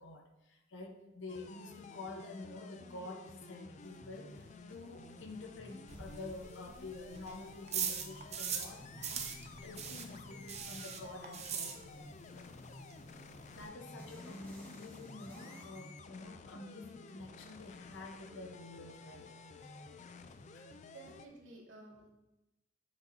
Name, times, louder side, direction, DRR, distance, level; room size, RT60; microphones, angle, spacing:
voice 1, 0.0-12.5 13.5-19.4 20.5-20.7, left 2 dB, 70° left, 4 dB, 1.0 m, -49 dB
sound 1, 1.3-21.3, left 3 dB, 35° left, 0.4 m, -53 dB
sound 2, 3.8-15.9, left 1 dB, 10° left, 1.6 m, -57 dB
sound 3, 5.9-8.8 9.0-12.2 12.5-12.6 12.9-13.0 13.2-13.7, right 7 dB, 35° right, 0.7 m, -40 dB
voice 2, 20.9-22.1, right 2 dB, 80° right, -3 dB, 2.1 m, -53 dB
8.2 x 7.1 x 2.7 m, 0.95 s
head